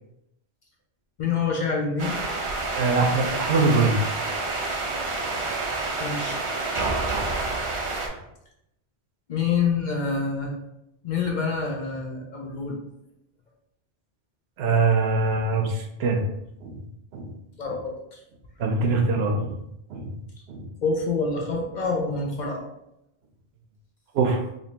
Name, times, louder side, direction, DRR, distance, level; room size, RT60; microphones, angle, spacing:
voice 1, 1.2-2.2 6.0-6.4 9.3-10.5 11.0-12.8 17.6-18.2 20.8-22.6, left 4 dB, 55° left, 0 dB, 0.6 m, -26 dB
sound 1, 2.0-8.1, right 3 dB, 55° right, 0.3 m, -28 dB
voice 2, 2.8-4.0 14.6-16.2 16.6-16.8 17.1-17.3 18.6-19.5 19.9-20.1 20.5-20.7 24.1-24.4, right 3 dB, 70° right, 3 dB, 0.8 m, -23 dB
3.4 x 2.7 x 2.8 m, 0.84 s
omnidirectional pair, 1.1 m